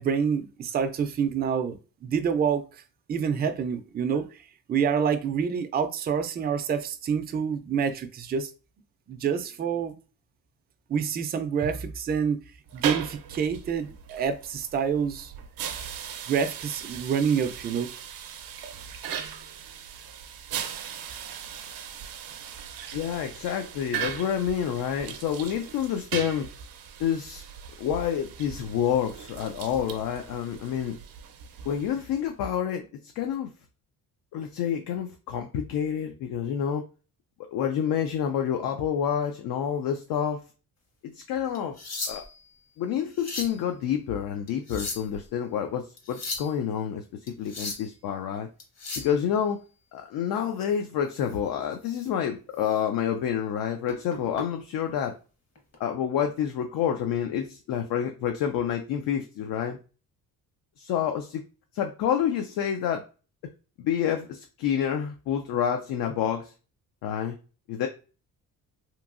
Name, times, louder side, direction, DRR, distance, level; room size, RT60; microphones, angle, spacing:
voice 1, 0.0-2.6 3.1-4.4 4.7-8.5 9.1-9.9 10.9-12.4 12.7-15.3 16.3-17.9, right 7 dB, 30° right, 0.3 m, -27 dB
sound 1, 12.7-32.3, right 8 dB, 75° right, 0.6 m, -38 dB
voice 2, 22.9-26.5 27.0-27.4 27.8-31.0 31.7-32.8 33.2-33.5 34.3-36.8 37.5-40.4 41.0-41.8 42.1-42.2 42.8-47.0 47.4-48.5 49.0-49.6 49.9-55.1 55.8-59.8 60.8-61.4 61.7-63.0 63.8-66.5 67.0-67.4 67.7-67.9, left 9 dB, 70° left, 0.5 m, -28 dB
sound 2, 41.5-42.4 43.0-43.6 44.5-45.2 46.0-46.5 47.3-47.9 48.6-49.1 51.2-51.3 51.9-52.1 52.5-52.7 53.9-54.4 55.5-55.7, left 3 dB, 45° left, 1.0 m, -36 dB
2.9 x 2.6 x 2.4 m
cardioid pair, 105°, 36 cm